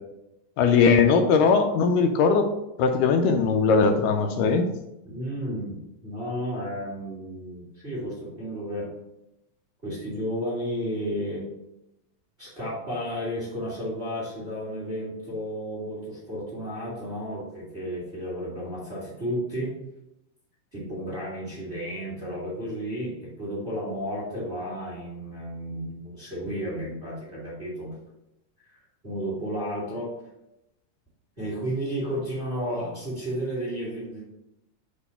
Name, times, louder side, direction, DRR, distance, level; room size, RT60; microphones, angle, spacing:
voice 1, 0.6-2.5 2.8-4.7, left 5 dB, 80° left, 5 dB, 2.1 m, -20 dB
voice 2, 5.0-8.9 9.8-11.4 12.4-19.7 20.7-27.9 28.6-28.8 29.0-30.1 31.4-34.2, equal, 25° right, -5 dB, 1.5 m, -32 dB
6.3 x 3.0 x 5.5 m, 0.88 s
omnidirectional pair, 3.9 m